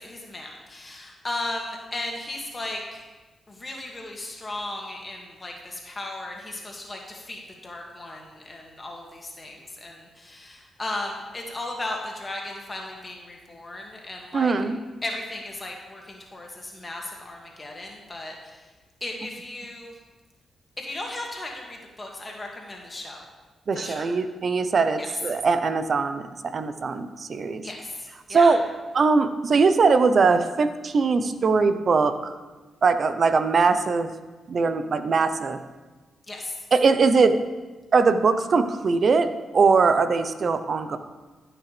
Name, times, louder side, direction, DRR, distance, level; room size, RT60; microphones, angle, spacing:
voice 1, 0.0-3.0 3.5-14.5 15.0-18.6 19.0-19.9 20.8-23.3 23.7-24.1 25.0-25.1 27.6-28.5 36.3-36.6, left 2 dB, 35° left, 0 dB, 2.0 m, -36 dB
voice 2, 14.3-14.8 23.7-27.7 28.3-28.6 28.9-32.4 32.8-34.1 34.5-35.6 36.7-37.4 37.9-41.0, right 4 dB, 55° right, 10 dB, 0.7 m, -21 dB
14.5 x 6.0 x 3.4 m, 1.2 s
supercardioid pair, 50°, 0 cm